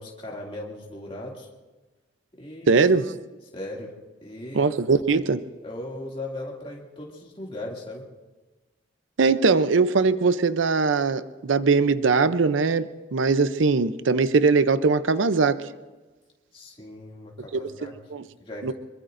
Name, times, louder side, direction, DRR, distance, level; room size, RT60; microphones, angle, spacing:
voice 1, 0.0-1.5 2.4-2.9 3.5-3.9 4.2-4.7 5.6-8.0 16.5-17.9 18.4-18.7, left 1 dB, 30° left, -2 dB, 2.4 m, -38 dB
voice 2, 2.7-3.1 4.5-5.4 9.2-15.6 17.5-18.2 18.6-18.7, right 4 dB, 85° right, 13 dB, 0.6 m, -21 dB
24.5 x 22.0 x 2.6 m, 1.2 s
head